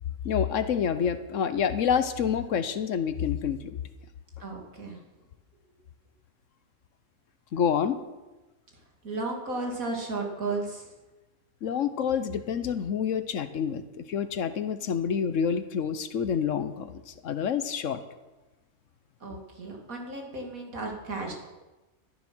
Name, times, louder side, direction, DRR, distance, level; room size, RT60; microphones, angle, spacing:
voice 1, 0.2-3.7 7.5-8.0 11.6-18.0, left 7 dB, 65° left, 12 dB, 1.1 m, -28 dB
voice 2, 4.4-5.0 9.0-10.9 19.2-21.3, right 3 dB, 80° right, 0 dB, 3.1 m, -34 dB
12.5 x 10.5 x 6.2 m, 1.1 s
omnidirectional pair, 1.4 m